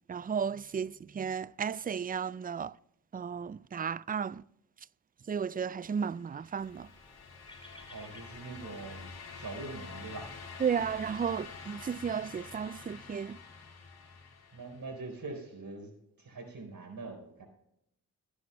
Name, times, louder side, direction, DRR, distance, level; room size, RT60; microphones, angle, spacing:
voice 1, 0.1-2.7 3.1-4.4 5.3-6.9 10.6-13.4, right 7 dB, 25° right, 0.4 m, -34 dB
sound 1, 6.2-15.1, left 5 dB, 85° left, 2.1 m, -47 dB
sound 2, 6.5-11.6, left 1 dB, 15° left, 3.8 m, -59 dB
voice 2, 7.9-9.1 9.3-10.3 14.5-15.9 16.2-17.5, right 3 dB, 65° right, 4.6 m, -43 dB
20.5 x 9.8 x 2.3 m
cardioid pair, 45°, 37 cm